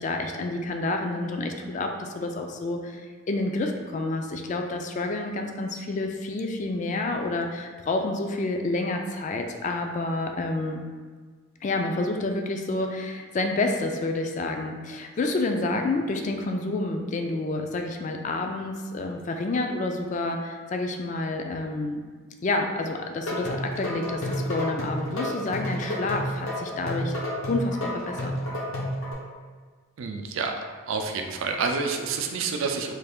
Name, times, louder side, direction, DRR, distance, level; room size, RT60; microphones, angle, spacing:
voice 1, 0.0-10.8 11.6-22.0 22.4-27.2 27.5-28.3, left 2 dB, 35° left, 4 dB, 0.3 m, -29 dB
sound 1, 23.1-29.1, equal, 85° left, 0.8 m, -30 dB
voice 2, 30.0-30.5 30.9-32.9, right 4 dB, 75° right, 4 dB, 0.4 m, -28 dB
3.3 x 2.4 x 3.5 m, 1.5 s
head